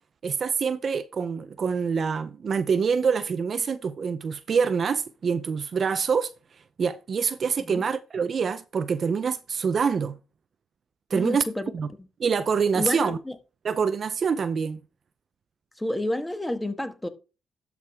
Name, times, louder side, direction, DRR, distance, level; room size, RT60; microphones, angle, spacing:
voice 1, 0.2-6.3 6.8-10.2 11.1-11.4 11.7-11.9 12.2-13.2 13.6-14.8, right 6 dB, 45° right, 0.6 m, -25 dB
voice 2, 11.1-11.7 12.0-12.1 12.7-13.4 15.8-17.1, left 1 dB, 10° left, 1.3 m, -30 dB
12.0 x 4.8 x 3.5 m
cardioid pair, 90°, 0 cm